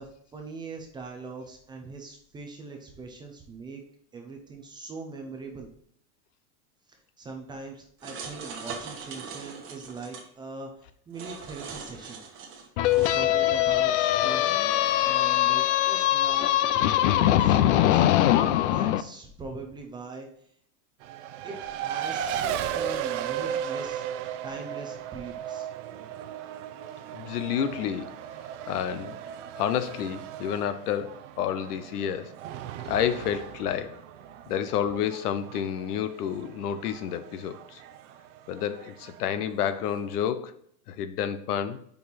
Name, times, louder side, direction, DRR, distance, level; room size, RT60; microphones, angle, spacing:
voice 1, 0.0-3.8 4.1-5.7 6.9-12.2 13.0-14.5 14.8-18.0 18.4-20.3 21.4-25.7 25.9-26.1, right 3 dB, 10° right, 0.4 m, -41 dB
sound 1, 8.0-10.2 11.1-13.2, right 5 dB, 30° right, 1.1 m, -40 dB
sound 2, 12.8-19.0, left 13 dB, 55° left, 0.5 m, -22 dB
Race car auto racing, 21.0-40.1, right 9 dB, 55° right, 0.6 m, -36 dB
voice 2, 27.1-28.2 28.7-29.2 29.5-32.3 32.8-34.0 34.5-37.8 38.5-40.6 40.9-41.8, left 9 dB, 90° left, 0.8 m, -30 dB
5.4 x 4.5 x 4.1 m
supercardioid pair, 150°, 45 cm